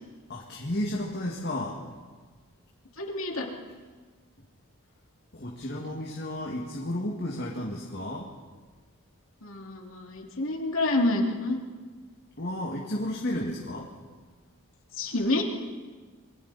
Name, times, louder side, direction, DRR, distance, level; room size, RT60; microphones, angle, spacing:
voice 1, 0.3-1.8 5.3-8.3 12.4-13.9 15.0-15.1, left 1 dB, 45° left, -2 dB, 2.0 m, -32 dB
voice 2, 3.0-3.5 9.4-11.6 15.0-15.4, left 2 dB, 65° left, 1 dB, 2.7 m, -28 dB
28.5 x 22.0 x 4.2 m, 1.4 s
head